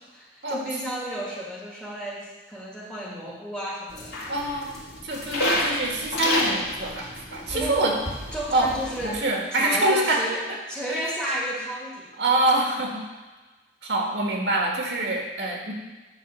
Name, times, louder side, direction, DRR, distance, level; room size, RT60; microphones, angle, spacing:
voice 1, 0.1-4.2 7.5-8.1 8.3-9.2 9.5-12.1, equal, 5° left, -4 dB, 1.5 m, -32 dB
sound 1, 3.9-9.2, left 1 dB, 75° left, 2.1 m, -29 dB
voice 2, 4.3-4.8 5.0-7.9 8.5-8.7 9.0-10.2 10.9-11.1 12.2-13.0 13.8-15.7, right 2 dB, 85° right, -1 dB, 1.6 m, -25 dB
9.4 x 3.8 x 6.2 m, 1.2 s
head